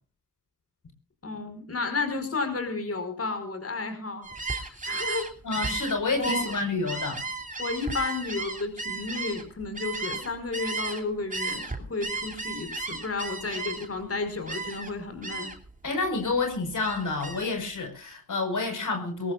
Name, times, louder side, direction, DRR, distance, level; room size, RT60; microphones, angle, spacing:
voice 1, 1.2-4.3 4.5-5.3 6.1-6.5 7.6-15.5, left 3 dB, 40° left, 5.0 m, -32 dB
Gull seagull, 4.2-11.0 11.3-14.0 14.5-14.9 15.2-15.7 16.1-17.5, right 3 dB, 20° right, 3.0 m, -34 dB
voice 2, 5.4-7.2 15.8-19.3, left 3 dB, 60° left, 5.0 m, -29 dB
22.5 x 20.5 x 2.5 m
cardioid pair, 85°, 35 cm